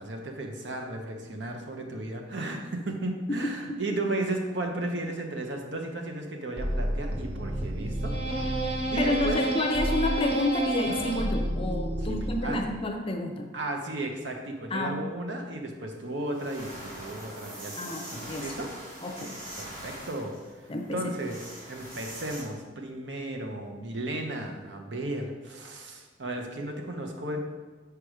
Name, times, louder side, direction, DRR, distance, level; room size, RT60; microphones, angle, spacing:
voice 1, 0.0-8.1 8.9-9.4 12.1-12.6 13.5-17.9 18.4-18.7 19.2-20.4 20.9-21.4 21.7-27.4, right 1 dB, 70° right, 3 dB, 0.9 m, -34 dB
voice 2, 3.4-3.9 9.0-13.5 14.7-15.0 17.8-18.6 19.0-19.4 20.7-21.0, left 1 dB, 30° left, 4 dB, 0.6 m, -30 dB
sound 1, 6.6-12.8, right 1 dB, 30° right, 0.7 m, -30 dB
sound 2, 15.9-16.0 16.3-22.4, right 1 dB, 50° right, 1.7 m, -43 dB
4.9 x 4.8 x 4.9 m, 1.3 s
head